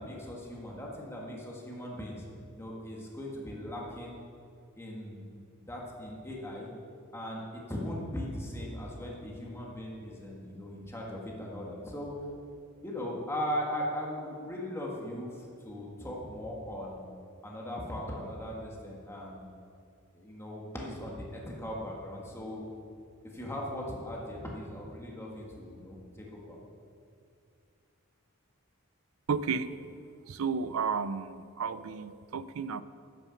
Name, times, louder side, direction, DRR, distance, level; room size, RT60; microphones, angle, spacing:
voice 1, 0.0-2.2 2.5-4.2 4.8-5.2 5.7-6.7 7.1-12.1 12.8-17.1 17.4-19.4 20.1-22.7 23.2-26.6, equal, 10° left, -3 dB, 1.6 m, -39 dB
voice 2, 29.3-29.7 30.3-32.8, right 5 dB, 70° right, 14 dB, 0.5 m, -32 dB
10.5 x 6.9 x 7.0 m, 2.4 s
head